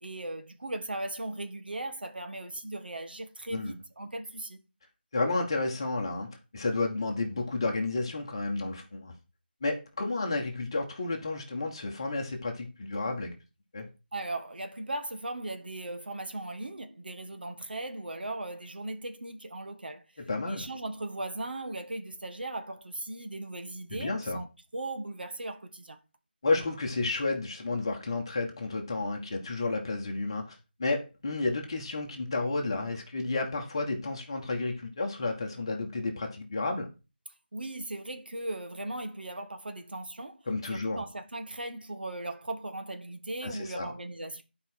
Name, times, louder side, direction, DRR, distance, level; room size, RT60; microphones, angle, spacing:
voice 1, 0.0-4.6 14.1-24.5 24.7-26.0 37.5-40.4 40.7-44.4, right 2 dB, 65° right, 1.5 m, -38 dB
voice 2, 5.1-9.1 9.6-13.3 13.7-13.9 20.3-20.7 23.9-24.4 26.4-36.9 40.5-41.0 43.4-43.9, left 3 dB, 30° left, 1.6 m, -31 dB
11.0 x 4.8 x 4.6 m
figure-of-eight pair, 170°, 6 cm